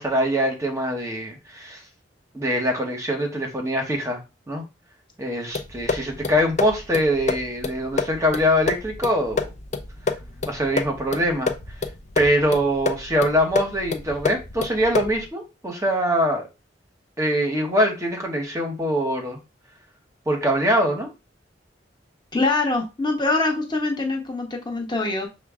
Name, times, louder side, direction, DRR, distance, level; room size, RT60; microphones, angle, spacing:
voice 1, 0.0-1.8 2.3-4.2 4.5-4.6 5.2-9.5 10.4-11.5 12.2-16.4 17.2-19.4 20.3-21.1, equal, 15° right, 2 dB, 0.9 m, -23 dB
sound 1, 5.5-15.3, left 4 dB, 40° left, 0.5 m, -29 dB
voice 2, 22.3-25.3, left 3 dB, 25° left, 1 dB, 0.9 m, -24 dB
5.9 x 2.1 x 3.5 m, 0.27 s
head